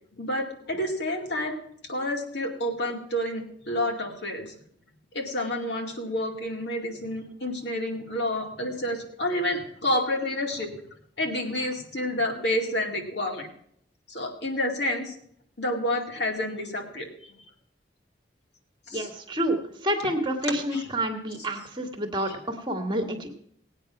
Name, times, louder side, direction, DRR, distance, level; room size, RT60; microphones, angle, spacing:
voice 1, 0.2-1.6 1.9-4.5 5.1-10.7 11.2-13.5 14.1-15.1 15.6-17.1 18.9-19.1 20.7-20.9 22.2-22.4, left 1 dB, 65° left, 2 dB, 2.4 m, -29 dB
voice 2, 18.9-23.3, right 1 dB, 25° right, 4 dB, 1.6 m, -29 dB
18.0 x 8.8 x 5.9 m, 0.68 s
head